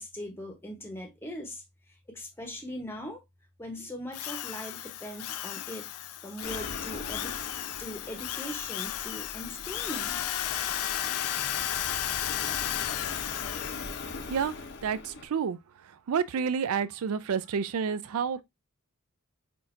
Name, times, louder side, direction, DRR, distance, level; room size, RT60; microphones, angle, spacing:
voice 1, 0.0-1.6 2.1-3.2 3.6-5.9 6.2-10.2, equal, 10° left, 0.8 m, -40 dB
Drill, 4.1-14.5, left 12 dB, 80° left, 0.4 m, -34 dB
sound 1, 6.4-15.3, left 3 dB, 50° left, 0.7 m, -41 dB
voice 2, 14.8-15.6 16.1-18.4, right 6 dB, 75° right, 0.4 m, -29 dB
6.0 x 2.4 x 2.5 m
head